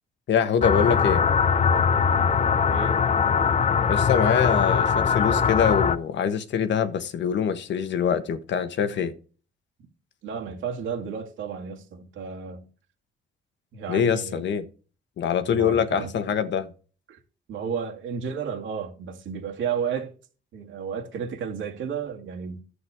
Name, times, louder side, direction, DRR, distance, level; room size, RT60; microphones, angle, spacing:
voice 1, 0.3-1.2 3.9-9.1 13.9-14.6 15.2-16.7, left 7 dB, 65° left, 1.3 m, -24 dB
sound 1, 0.6-6.0, left 6 dB, 35° left, 0.7 m, -21 dB
voice 2, 2.7-3.0 10.2-12.7 13.7-14.4 15.5-16.1 17.1-17.2 17.5-20.1 20.5-22.6, right 7 dB, 75° right, 2.3 m, -32 dB
11.5 x 8.1 x 3.6 m
cardioid pair, 90°, 20 cm